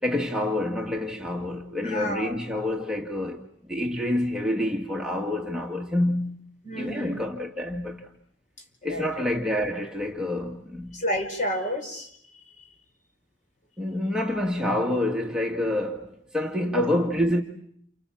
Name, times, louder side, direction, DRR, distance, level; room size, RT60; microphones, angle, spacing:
voice 1, 0.0-6.4 6.8-8.1 8.8-11.0 13.8-17.4, left 1 dB, 5° right, 1.7 m, -27 dB
voice 2, 1.8-2.3 6.6-7.2 8.8-9.2 10.9-12.4 16.6-16.9, equal, 40° left, 5.2 m, -30 dB
29.0 x 27.5 x 7.3 m
head